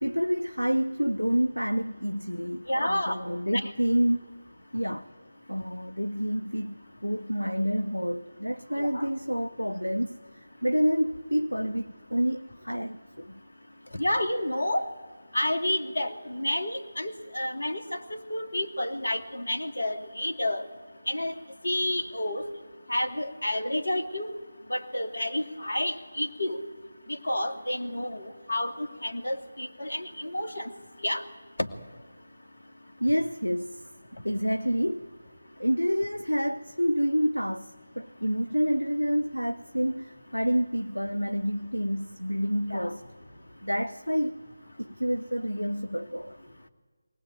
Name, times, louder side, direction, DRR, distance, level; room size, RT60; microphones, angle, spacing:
voice 1, 0.0-4.2 4.7-5.1 5.5-6.8 7.0-13.4 33.0-33.8 34.2-35.1 35.6-43.0 43.6-44.4 44.8-46.4, equal, 90° left, 0.9 m, -28 dB
voice 2, 2.7-3.2 3.5-3.7 8.8-9.1 13.9-14.9 15.3-20.6 21.1-21.3 21.6-22.4 22.9-24.3 24.7-26.6 27.1-30.7 31.0-31.2 31.6-31.7 42.7-42.9, left 1 dB, 65° left, 2.2 m, -30 dB
23.5 x 18.5 x 9.2 m
figure-of-eight pair, 160°, 0 cm